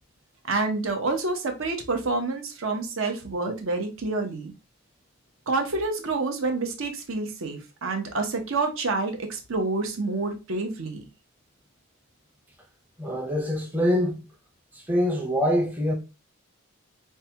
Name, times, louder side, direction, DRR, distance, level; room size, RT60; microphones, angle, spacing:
voice 1, 0.5-4.5 5.5-11.0, right 3 dB, 65° right, 0.8 m, -28 dB
voice 2, 13.0-14.2 14.7-15.9, equal, 10° right, 0.7 m, -24 dB
4.6 x 2.2 x 2.7 m
head